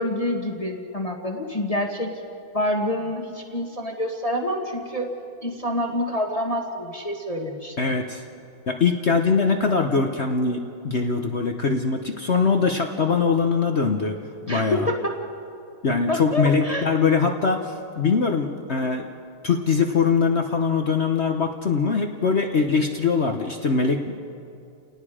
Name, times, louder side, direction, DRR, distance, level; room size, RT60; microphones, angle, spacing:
voice 1, 0.0-2.1 2.5-5.1 5.4-7.9 14.5-15.2 16.1-16.9, left 1 dB, 20° left, 0 dB, 1.2 m, -27 dB
voice 2, 7.8-8.2 8.7-14.2 14.5-14.9 15.8-19.1 19.4-24.2, left 5 dB, 50° left, 4 dB, 0.8 m, -22 dB
30.0 x 18.5 x 5.0 m, 2.5 s
omnidirectional pair, 2.4 m